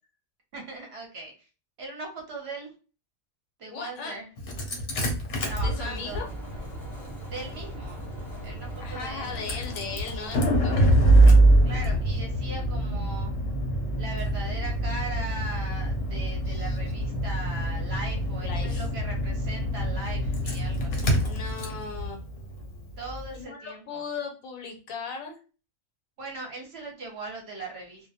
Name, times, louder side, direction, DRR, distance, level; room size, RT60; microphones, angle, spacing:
voice 1, 0.5-1.5 1.8-2.7 3.6-4.3 5.4-6.2 7.3-8.1 8.4-9.7 11.6-13.3 14.0-21.2 23.0-24.0 26.2-28.1, right 2 dB, 60° right, 0 dB, 0.8 m, -39 dB
voice 2, 3.7-4.2 5.5-6.3 8.8-10.9 18.4-18.8 21.3-22.2 23.3-25.3, left 5 dB, 80° left, 4 dB, 1.1 m, -37 dB
Engine starting, 4.4-23.3, right 1 dB, 60° left, 0.8 m, -25 dB
sound 1, 5.5-10.5, equal, ahead, 0.6 m, -42 dB
2.2 x 2.1 x 2.6 m, 0.35 s
omnidirectional pair, 1.4 m